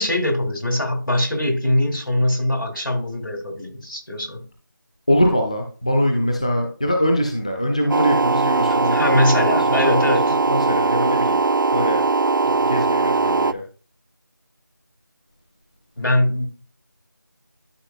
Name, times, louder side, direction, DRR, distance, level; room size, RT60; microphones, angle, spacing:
voice 1, 0.0-4.4 8.7-10.4 16.0-16.5, left 1 dB, 75° left, 2.3 m, -22 dB
voice 2, 5.1-10.1 10.5-11.4 11.7-12.0 12.4-13.6, equal, 20° left, 0.4 m, -22 dB
sound 1, 7.9-13.5, right 3 dB, 75° right, 0.4 m, -20 dB
12.5 x 4.9 x 2.3 m
figure-of-eight pair, 170°, 11 cm